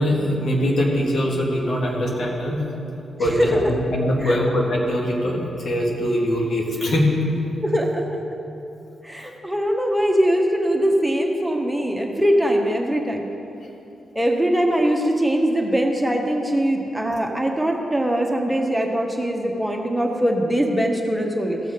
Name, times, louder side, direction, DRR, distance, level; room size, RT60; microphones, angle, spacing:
voice 1, 0.0-2.6 3.2-7.1, equal, 65° left, -2 dB, 2.4 m, -22 dB
voice 2, 3.2-3.6 4.2-4.4 7.6-8.2 9.0-13.3 14.1-21.6, equal, 5° right, 1 dB, 1.5 m, -22 dB
16.5 x 6.1 x 5.3 m, 2.9 s
supercardioid pair, 45°, 0 cm